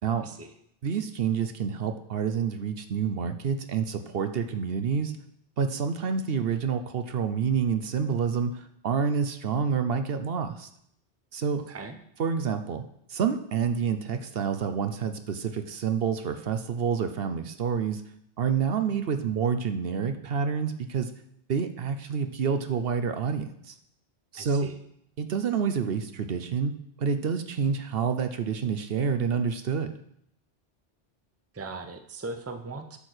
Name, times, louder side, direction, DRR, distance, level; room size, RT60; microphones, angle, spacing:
voice 1, 0.2-0.5 11.7-11.9 24.4-24.8 31.5-33.0, right 3 dB, 15° right, 7 dB, 0.6 m, -39 dB
voice 2, 0.8-5.1 5.6-10.7 11.3-11.6 12.2-12.8 13.1-18.0 18.4-21.1 21.5-23.7 24.3-24.7 25.2-26.7 27.0-29.9, right 6 dB, 65° right, 8 dB, 0.9 m, -28 dB
10.5 x 4.4 x 6.6 m, 0.71 s
omnidirectional pair, 1.1 m